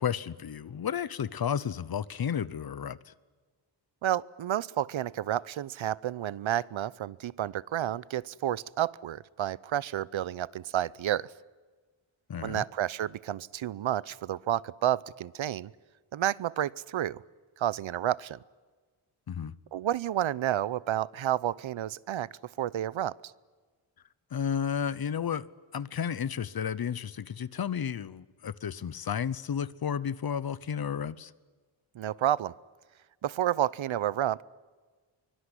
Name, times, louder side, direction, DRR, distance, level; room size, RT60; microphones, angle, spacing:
voice 1, 0.0-3.1 12.3-12.6 19.3-19.5 24.3-25.5 25.7-31.3, left 8 dB, 50° left, 0.8 m, -32 dB
voice 2, 4.0-11.3 12.4-15.7 16.1-17.2 17.6-18.4 19.7-22.3 22.6-23.2 31.9-32.5 33.2-34.4, right 11 dB, 70° right, 0.7 m, -30 dB
24.0 x 23.5 x 10.0 m
wide cardioid pair, 175°, 48 cm